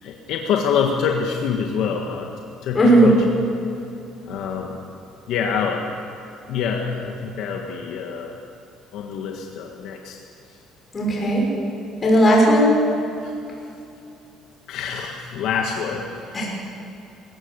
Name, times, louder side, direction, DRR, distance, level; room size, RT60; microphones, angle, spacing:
voice 1, 0.0-2.3 2.6-3.2 4.3-4.8 5.3-5.9 6.5-8.3 8.9-10.2 13.2-13.3 14.7-16.4, left 6 dB, 65° left, 2 dB, 1.6 m, -26 dB
voice 2, 2.7-3.1 10.9-11.5 12.0-12.7 16.3-16.5, right 1 dB, 20° left, -3 dB, 6.1 m, -15 dB
20.5 x 17.5 x 8.1 m, 2.7 s
cardioid pair, 170°, 0 cm